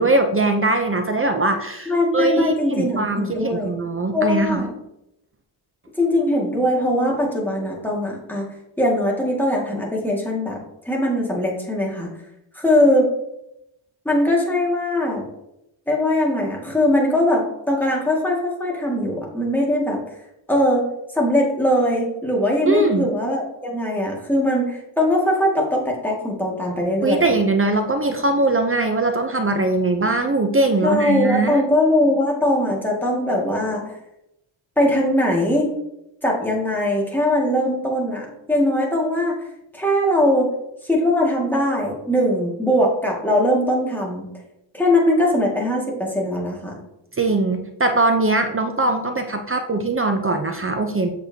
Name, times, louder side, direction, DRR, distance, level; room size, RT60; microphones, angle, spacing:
voice 1, 0.0-4.7 22.7-23.1 27.0-31.6 47.1-51.1, right 2 dB, 25° right, 5 dB, 0.6 m, -21 dB
voice 2, 1.9-3.7 4.1-4.7 6.0-8.5 8.8-10.6 10.9-12.1 12.5-13.1 14.1-15.3 15.9-20.0 20.5-20.9 21.1-27.3 30.8-34.0 34.8-35.7 36.2-39.4 39.7-40.5 40.9-44.3 44.7-46.8, left 1 dB, 5° left, -2 dB, 1.9 m, -21 dB
8.1 x 6.6 x 2.8 m, 0.84 s
wide cardioid pair, 120°, 49 cm